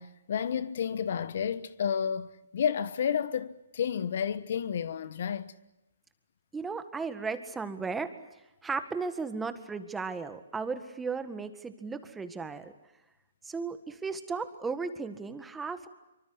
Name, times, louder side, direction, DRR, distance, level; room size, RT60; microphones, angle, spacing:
voice 1, 0.0-5.5, left 8 dB, 60° left, 1.2 m, -31 dB
voice 2, 6.5-8.1 8.6-12.7 13.4-15.9, right 4 dB, 10° right, 1.8 m, -35 dB
25.5 x 24.5 x 8.0 m
hypercardioid pair, 140°, 0 cm